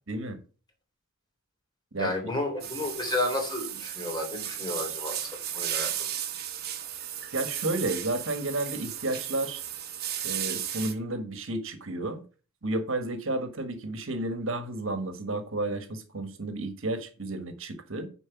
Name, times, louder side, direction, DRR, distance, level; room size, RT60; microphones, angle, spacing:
voice 1, 0.1-0.4 1.9-2.1 7.3-9.6 10.2-12.2 12.6-18.1, right 2 dB, 65° right, 1.5 m, -32 dB
voice 2, 2.0-5.2 5.5-6.1, left 1 dB, 20° left, 3.4 m, -31 dB
sound 1, 2.6-10.9, right 10 dB, 50° right, 1.2 m, -35 dB
9.9 x 4.4 x 5.8 m
head